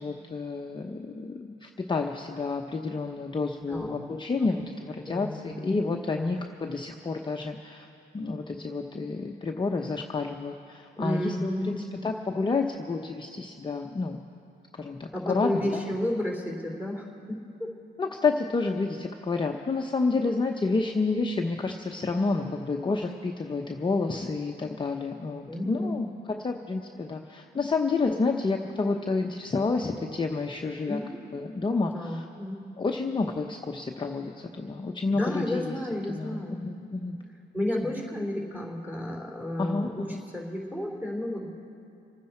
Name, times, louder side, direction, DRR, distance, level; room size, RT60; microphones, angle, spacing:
voice 1, 0.0-7.9 8.1-14.2 14.7-15.8 18.0-31.0 31.3-32.3 32.8-35.8 36.1-37.2 37.8-37.9 39.6-40.2, left 3 dB, 25° left, 2 dB, 0.8 m, -29 dB
voice 2, 3.7-4.0 5.1-5.7 6.2-6.4 11.0-11.8 15.1-17.7 25.5-26.0 30.9-31.2 31.8-32.7 35.1-36.8 37.5-40.1 40.3-41.5, left 1 dB, 10° right, -1 dB, 3.4 m, -32 dB
28.0 x 9.5 x 4.4 m, 2.7 s
cardioid pair, 90°, 20 cm